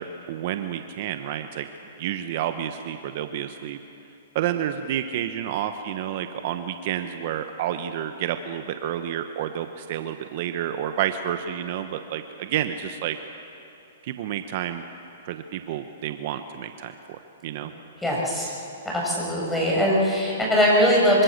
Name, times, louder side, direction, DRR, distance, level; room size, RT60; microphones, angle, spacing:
voice 1, 0.0-1.7 2.0-3.8 4.3-13.2 14.0-14.8 15.2-17.7, right 10 dB, 50° right, 8 dB, 1.1 m, -30 dB
voice 2, 18.0-18.5 18.9-21.2, equal, 5° left, -4 dB, 7.1 m, -21 dB
25.5 x 24.5 x 6.7 m, 2.7 s
hypercardioid pair, 140°, 0 cm